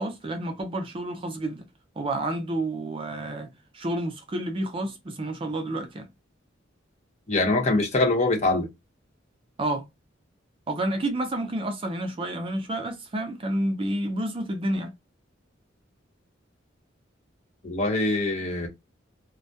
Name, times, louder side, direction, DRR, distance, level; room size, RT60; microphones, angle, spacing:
voice 1, 0.0-1.7 2.0-6.1 9.6-9.9 10.7-14.9, right 1 dB, 30° right, 0.4 m, -30 dB
voice 2, 7.3-8.7 17.6-18.7, left 2 dB, 35° left, 0.8 m, -23 dB
2.2 x 2.1 x 2.6 m
head